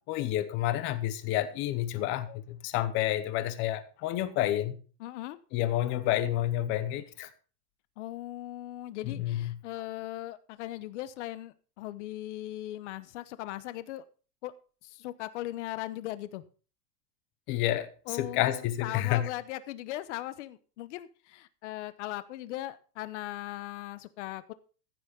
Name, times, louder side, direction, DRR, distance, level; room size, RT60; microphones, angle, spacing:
voice 1, 0.1-4.7 5.5-7.3 9.0-9.5 17.5-19.3, left 13 dB, 25° left, 0.8 m, -29 dB
voice 2, 5.0-5.4 8.0-14.0 14.4-14.5 14.8-16.4 18.1-24.5, left 15 dB, 50° left, 1.0 m, -39 dB
15.0 x 6.3 x 5.2 m
supercardioid pair, 175°, 46 cm